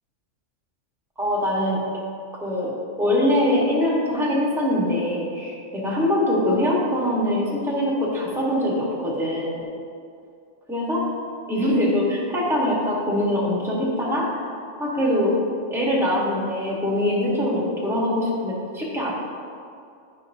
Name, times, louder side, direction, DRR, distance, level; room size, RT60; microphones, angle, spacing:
voice 1, 1.2-1.8 2.4-2.7 3.0-9.6 10.7-11.0 11.5-14.3 14.8-15.4 15.7-19.1, left 1 dB, ahead, -5 dB, 1.1 m, -23 dB
8.4 x 5.8 x 2.6 m, 2.4 s
omnidirectional pair, 1.4 m